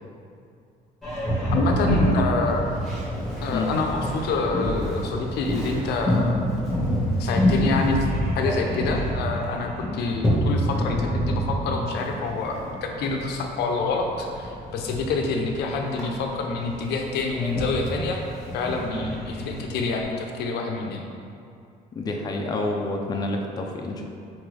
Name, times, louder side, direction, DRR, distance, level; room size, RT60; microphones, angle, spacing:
Boat Water vehicle, 1.0-20.0, equal, ahead, 1.3 m, -27 dB
voice 1, 1.5-2.6 3.4-6.4 7.2-8.0 8.4-18.2 18.5-21.1, left 3 dB, 75° left, 2 dB, 0.5 m, -27 dB
voice 2, 22.0-24.0, left 2 dB, 25° left, 1 dB, 0.4 m, -28 dB
4.2 x 3.7 x 3.2 m, 2.4 s
cardioid pair, 110°, 17 cm